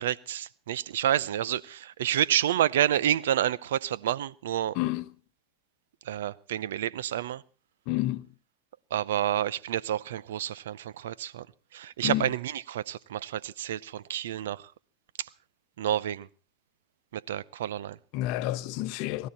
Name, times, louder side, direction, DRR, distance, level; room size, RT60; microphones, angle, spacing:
voice 1, 0.0-4.7 6.1-7.4 8.9-11.4 11.7-14.6 15.8-16.3 17.1-18.0, right 11 dB, 80° right, 0.6 m, -29 dB
voice 2, 4.7-5.1 7.9-8.3 12.0-12.3 18.1-19.3, left 16 dB, 60° left, 0.9 m, -29 dB
19.0 x 13.0 x 4.3 m
hypercardioid pair, 95°, 0 cm